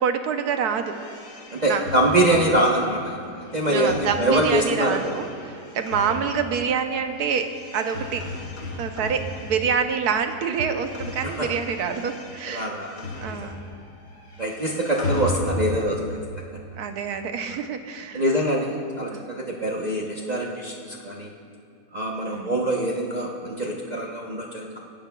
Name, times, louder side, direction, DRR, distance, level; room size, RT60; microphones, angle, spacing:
voice 1, 0.0-0.9 1.6-1.8 2.3-2.6 3.7-8.2 8.8-12.7 13.2-13.6 16.7-18.2 19.1-19.3 22.3-22.6, right 6 dB, 65° right, 7 dB, 1.2 m, -26 dB
sound 1, 0.8-10.1 10.3-13.8 14.1-16.0, left 2 dB, 65° left, 2.3 m, -36 dB
voice 2, 1.5-3.1 3.5-5.0 6.1-6.2 12.5-13.0 13.3-13.4 14.4-16.1 17.4-17.6 18.1-21.3 21.9-24.8, right 1 dB, 35° right, -3 dB, 0.7 m, -24 dB
26.0 x 11.5 x 2.3 m, 2.4 s
omnidirectional pair, 1.9 m